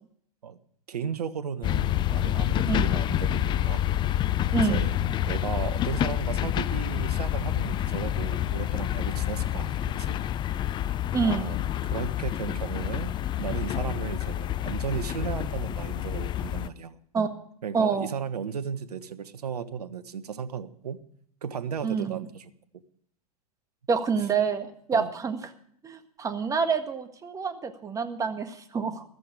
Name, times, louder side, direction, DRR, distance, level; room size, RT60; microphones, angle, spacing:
voice 1, 0.9-3.8 4.6-5.0 5.3-10.2 11.2-13.1 13.4-17.0 17.6-21.0 21.4-22.5 24.9-25.1, right 7 dB, 75° right, 14 dB, 1.3 m, -35 dB
sound 1, 1.6-16.7, left 12 dB, 25° left, 0.6 m, -28 dB
voice 2, 4.5-4.9 11.1-11.5 17.1-17.3 17.7-18.1 21.8-22.1 23.9-25.4 25.8-29.0, right 5 dB, 15° right, 9 dB, 1.6 m, -27 dB
14.5 x 13.5 x 4.9 m, 0.63 s
hypercardioid pair, 110°, 20 cm